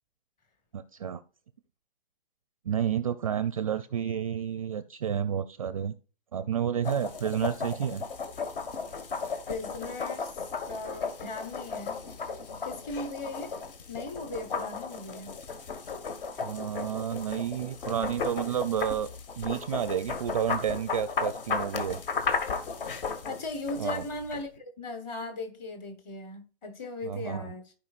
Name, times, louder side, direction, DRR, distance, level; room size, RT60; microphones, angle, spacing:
voice 1, 0.7-1.2 2.7-5.9 6.3-8.0 16.4-19.1 19.4-22.0 23.8-24.0 27.0-27.5, right 9 dB, 35° right, 0.4 m, -30 dB
sound 1, 6.8-24.4, left 5 dB, 60° left, 1.6 m, -35 dB
voice 2, 9.5-12.1 12.6-13.6 13.9-15.4 23.2-27.7, left 2 dB, 15° left, 1.1 m, -38 dB
14.5 x 5.0 x 2.4 m
hypercardioid pair, 160°, 31 cm